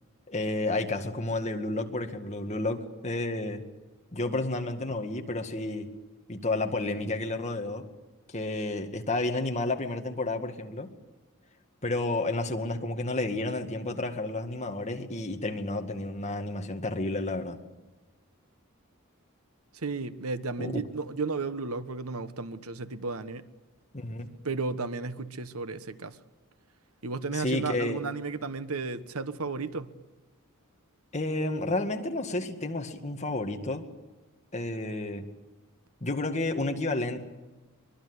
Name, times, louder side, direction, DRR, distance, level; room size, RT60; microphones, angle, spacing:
voice 1, 0.3-3.7 4.1-5.9 6.3-7.8 8.3-10.9 11.8-17.6 20.6-20.8 23.9-24.3 27.3-28.0 31.1-33.9 34.5-35.3 36.0-37.2, left 2 dB, 30° left, 2.0 m, -31 dB
voice 2, 19.8-23.4 24.4-26.2 27.0-29.9, right 3 dB, 80° right, 1.2 m, -33 dB
24.0 x 22.5 x 8.2 m
head